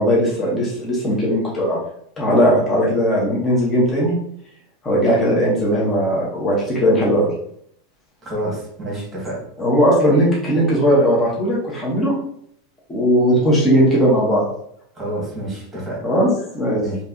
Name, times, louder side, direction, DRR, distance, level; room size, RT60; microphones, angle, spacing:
voice 1, 0.0-1.8 2.2-4.1 4.8-7.3 9.6-12.1 12.9-14.4 16.0-16.8, equal, 15° left, -5 dB, 0.9 m, -18 dB
voice 2, 8.2-9.4 14.9-16.0 16.8-17.0, right 1 dB, 10° right, -4 dB, 1.5 m, -28 dB
4.5 x 2.8 x 2.6 m, 0.68 s
supercardioid pair, 165°, 0 cm